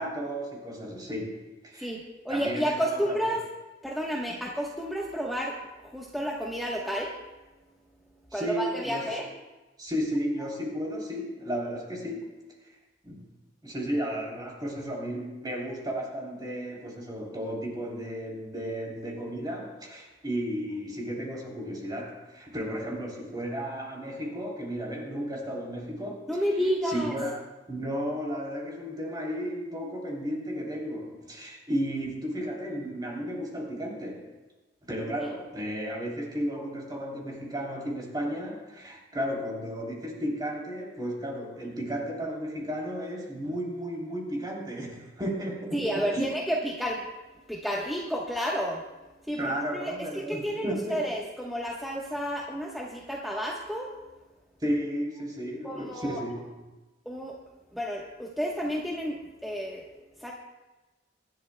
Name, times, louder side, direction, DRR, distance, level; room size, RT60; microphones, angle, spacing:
voice 1, 0.0-1.9 2.3-3.2 8.3-9.1 9.8-12.3 12.6-12.7 13.0-13.3 13.6-26.2 26.8-34.3 34.9-46.2 49.4-51.1 54.6-56.6, equal, 25° right, -2 dB, 3.3 m, -33 dB
voice 2, 1.8-3.4 3.8-5.6 5.8-7.2 8.3-9.3 26.3-27.1 45.7-47.1 47.5-48.8 49.3-53.9 55.6-56.2 57.0-57.4 57.7-59.9 60.2-60.3, equal, ahead, -4 dB, 1.1 m, -31 dB
24.5 x 11.5 x 2.2 m, 1.2 s
head